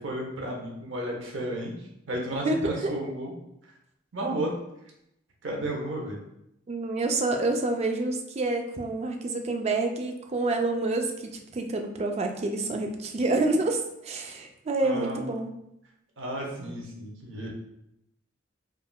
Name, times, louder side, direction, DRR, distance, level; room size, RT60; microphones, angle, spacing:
voice 1, 0.0-1.7 2.1-3.3 4.1-4.5 5.4-6.2 14.8-15.2 16.2-17.5, right 1 dB, 85° right, -1 dB, 0.7 m, -32 dB
voice 2, 2.4-2.9 6.7-15.5, right 2 dB, 35° right, 4 dB, 0.3 m, -28 dB
3.4 x 2.3 x 2.2 m, 0.81 s
head